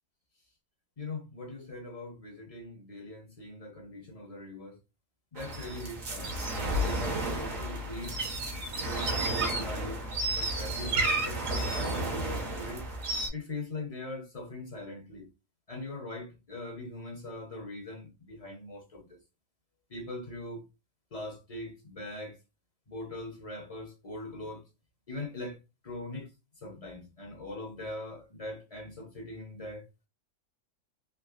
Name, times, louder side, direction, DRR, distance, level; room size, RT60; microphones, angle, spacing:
voice 1, 1.0-4.8 5.3-8.2 8.8-10.0 10.3-12.8 13.3-15.3 15.7-19.2 19.9-20.6 21.1-22.4 22.9-24.6 25.1-25.6 25.8-29.8, left 2 dB, 45° left, 0.5 m, -41 dB
sound 1, 5.4-13.3, right 2 dB, 75° right, 1.3 m, -32 dB
3.4 x 2.7 x 2.3 m
omnidirectional pair, 1.4 m